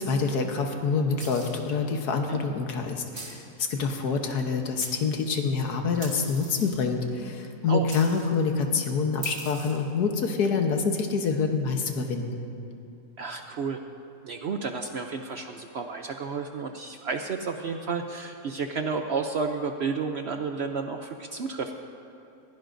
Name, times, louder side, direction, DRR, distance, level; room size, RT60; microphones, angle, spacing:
voice 1, 0.0-12.4, left 5 dB, 85° left, 4 dB, 1.6 m, -26 dB
sound 1, 1.2-1.7 3.1-3.5 4.4-4.5 4.8-5.4 6.0-6.9 7.9-8.4 9.2-9.9, right 3 dB, 45° right, 1.8 m, -42 dB
voice 2, 13.2-13.8 14.2-21.7, right 5 dB, 60° right, 5 dB, 0.7 m, -31 dB
20.0 x 16.0 x 2.6 m, 2.8 s
omnidirectional pair, 1.7 m